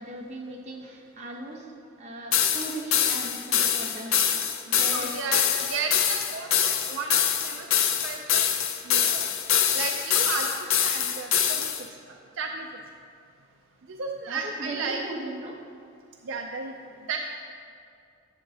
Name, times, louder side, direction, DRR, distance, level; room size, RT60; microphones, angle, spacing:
voice 1, 0.0-1.7 2.0-4.2 4.6-5.3 14.3-15.6, right 1 dB, 35° right, -2 dB, 1.0 m, -38 dB
sound 1, 2.3-11.8, left 9 dB, 75° left, 0.5 m, -24 dB
voice 2, 4.9-7.7 8.0-8.4 8.8-9.3 9.7-10.5 10.8-11.7 12.1-12.7 13.9-15.0 16.2-16.7 17.0-17.2, right 4 dB, 60° right, 3 dB, 0.4 m, -33 dB
11.5 x 7.6 x 2.8 m, 2.4 s
head